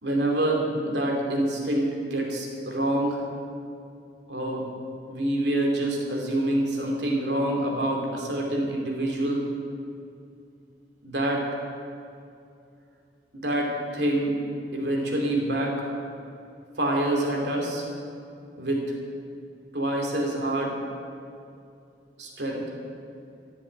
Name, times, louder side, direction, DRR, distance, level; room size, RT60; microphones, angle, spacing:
voice 1, 0.0-3.2 4.3-4.6 5.1-9.5 11.0-11.4 13.3-14.3 14.7-15.7 16.8-17.8 18.6-18.8 19.7-20.8 22.2-22.6, right 1 dB, 70° right, 0 dB, 2.9 m, -26 dB
14.0 x 7.7 x 8.7 m, 2.5 s
head